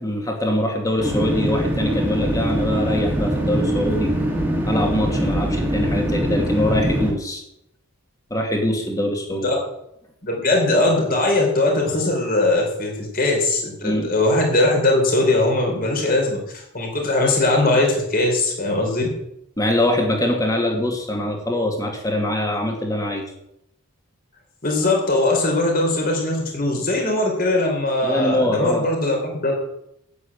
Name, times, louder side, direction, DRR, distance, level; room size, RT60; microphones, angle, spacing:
voice 1, 0.0-4.1 4.6-7.4 8.3-9.5 13.8-14.1 19.6-23.2 28.0-28.9, left 1 dB, 15° left, 2 dB, 2.4 m, -23 dB
sound 1, 1.0-7.1, equal, 10° right, 2.1 m, -22 dB
voice 2, 10.2-19.0 24.6-29.5, left 2 dB, 40° left, 1 dB, 4.1 m, -20 dB
9.4 x 8.8 x 8.8 m, 0.79 s
head